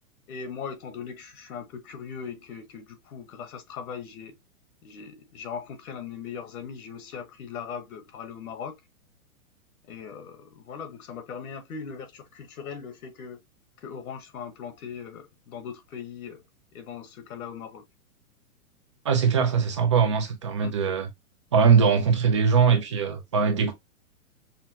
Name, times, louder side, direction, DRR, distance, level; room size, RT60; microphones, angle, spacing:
voice 1, 0.3-4.4 4.8-8.8 9.9-13.4 13.8-16.4 16.7-17.8 20.6-20.7 23.6-23.7, left 6 dB, 75° left, 1.2 m, -39 dB
voice 2, 19.0-21.1 21.5-23.7, right 6 dB, 25° right, 0.4 m, -21 dB
5.6 x 2.2 x 2.7 m
hypercardioid pair, 150°, 43 cm